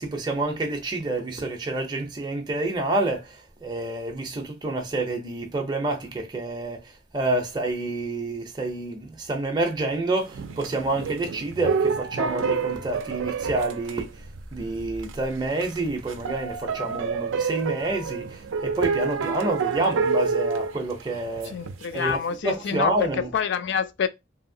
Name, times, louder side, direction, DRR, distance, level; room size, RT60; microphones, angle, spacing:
voice 1, 0.0-3.3 3.6-6.8 7.1-14.1 14.5-21.5 21.9-22.2 22.4-23.3, right 2 dB, 20° right, 0.6 m, -28 dB
sound 1, 10.3-14.7 15.0-15.1 15.5-22.1, right 5 dB, 70° right, 0.4 m, -28 dB
voice 2, 21.4-24.1, left 7 dB, 60° left, 0.4 m, -27 dB
2.8 x 2.7 x 2.6 m
head